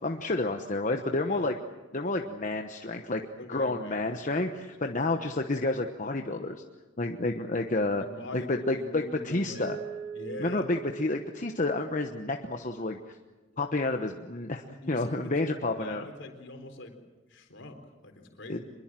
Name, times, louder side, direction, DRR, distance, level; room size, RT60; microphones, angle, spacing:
voice 1, 0.0-1.5 1.9-3.2 3.5-6.6 7.0-8.0 8.3-9.8 10.4-13.1 13.6-16.0 18.5-18.6, left 2 dB, 40° left, 5 dB, 1.1 m, -30 dB
voice 2, 3.4-4.0 4.3-5.0 8.0-9.7 10.1-10.7 14.7-17.0 17.3-18.6, left 2 dB, 65° left, 5 dB, 3.9 m, -44 dB
Mallet percussion, 9.5-12.4, right 6 dB, 80° right, 4.2 m, -42 dB
24.5 x 21.5 x 7.6 m, 1.2 s
head